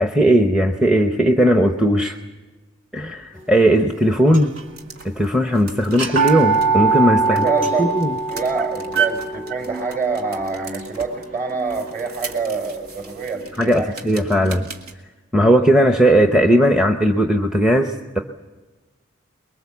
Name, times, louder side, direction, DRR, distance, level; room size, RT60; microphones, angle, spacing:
voice 1, 0.0-2.2 2.9-4.5 5.0-7.5 7.8-8.2 13.6-14.7 15.3-18.2, equal, 5° right, 4 dB, 0.7 m, -17 dB
sound 1, 4.3-4.8 5.2-5.3 5.9-11.8, right 5 dB, 55° right, 2.0 m, -23 dB
sound 2, 4.5-14.9, right 7 dB, 80° right, 2.1 m, -34 dB
voice 2, 7.3-7.9 8.3-14.1, right 4 dB, 35° right, 3 dB, 4.7 m, -26 dB
23.5 x 22.0 x 7.3 m, 1.2 s
head